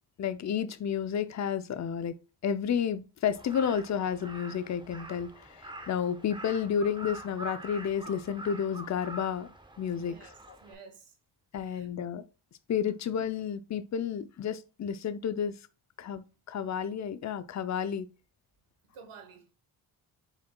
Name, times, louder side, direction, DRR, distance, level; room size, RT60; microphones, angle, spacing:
voice 1, 0.2-2.1 2.4-9.5 9.8-10.1 11.5-12.2 12.7-15.5 16.0-18.1, left 8 dB, 35° left, 0.5 m, -31 dB
Crow, 3.3-10.7, right 1 dB, 10° right, 0.6 m, -45 dB
voice 2, 9.9-11.1 11.6-11.9 18.9-19.5, right 5 dB, 80° right, 1.3 m, -52 dB
5.0 x 4.2 x 2.2 m
cardioid pair, 55°, 50 cm